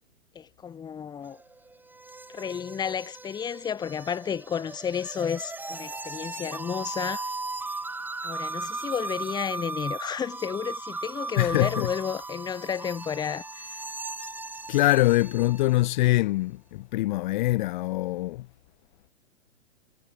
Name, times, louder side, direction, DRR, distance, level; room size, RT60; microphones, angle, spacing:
voice 1, 0.3-1.4 2.3-7.4 8.2-13.8, left 7 dB, 10° left, 1.1 m, -32 dB
sound 1, 1.2-15.9, right 3 dB, 5° right, 2.0 m, -37 dB
voice 2, 11.4-11.9 14.7-18.4, left 18 dB, 40° left, 0.8 m, -24 dB
hypercardioid pair, 125°, 37 cm